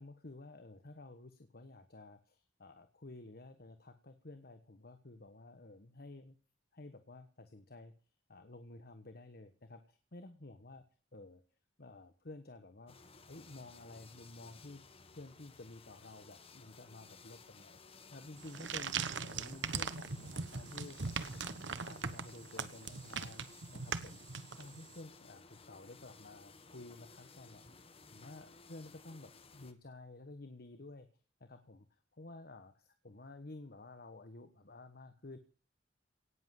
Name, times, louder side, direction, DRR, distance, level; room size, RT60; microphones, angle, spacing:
voice 1, 0.0-6.3 6.7-7.9 8.3-10.8 11.1-11.4 11.8-12.9 13.3-14.8 15.1-21.0 21.3-24.3 24.6-27.6 28.1-31.1 31.4-35.4, left 2 dB, 55° left, 8 dB, 1.3 m, -52 dB
sound 1, 12.9-29.7, left 4 dB, 30° left, 1.4 m, -58 dB
sound 2, 18.4-24.9, right 5 dB, 75° right, 1.1 m, -40 dB
18.0 x 7.7 x 7.7 m, 0.41 s
head